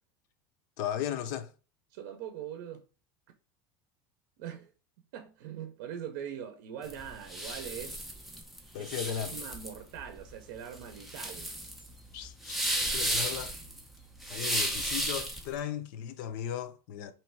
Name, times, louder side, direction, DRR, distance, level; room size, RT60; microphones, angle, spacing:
voice 1, 0.8-1.5 8.7-9.4 12.1-13.5 14.3-17.1, left 9 dB, 55° left, 0.5 m, -36 dB
voice 2, 1.9-2.8 4.4-4.7 5.1-8.0 8.8-8.9 9.3-11.5, right 9 dB, 60° right, 0.6 m, -42 dB
sound 1, 6.8-15.5, right 1 dB, ahead, 0.4 m, -34 dB
3.1 x 2.9 x 4.5 m
cardioid pair, 180°, 11 cm